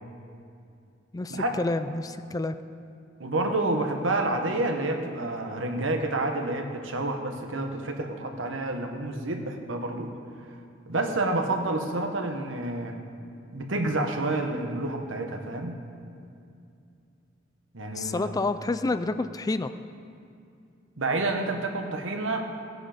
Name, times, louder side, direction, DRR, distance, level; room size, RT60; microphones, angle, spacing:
voice 1, 1.1-2.6 17.9-19.7, left 2 dB, 20° left, 11 dB, 0.3 m, -29 dB
voice 2, 3.2-10.2 10.9-13.0 13.5-15.8 17.7-18.4 21.0-22.4, right 2 dB, 80° right, 4 dB, 1.3 m, -29 dB
18.0 x 8.6 x 5.1 m, 2.5 s
head